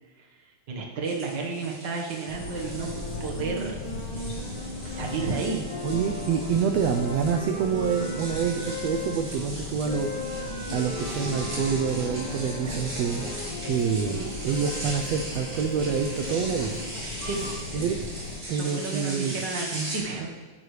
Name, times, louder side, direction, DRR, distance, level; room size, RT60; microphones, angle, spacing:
voice 1, 0.7-2.9 3.2-3.8 4.8-5.6 17.2-17.5 18.5-20.3, right 4 dB, 50° right, 0 dB, 1.4 m, -32 dB
sound 1, 1.0-20.0, right 1 dB, 30° right, 4.1 m, -39 dB
sound 2, 2.3-18.4, left 2 dB, 65° left, 1.0 m, -36 dB
Wind instrument woodwind instrument, 4.7-9.2 9.8-13.5, left 2 dB, ahead, 3.0 m, -40 dB
voice 2, 5.8-10.1 10.3-13.3 13.6-16.8 17.7-17.9 18.5-19.4, right 7 dB, 85° right, 5 dB, 1.4 m, -27 dB
14.0 x 11.0 x 3.3 m, 1.4 s
omnidirectional pair, 3.7 m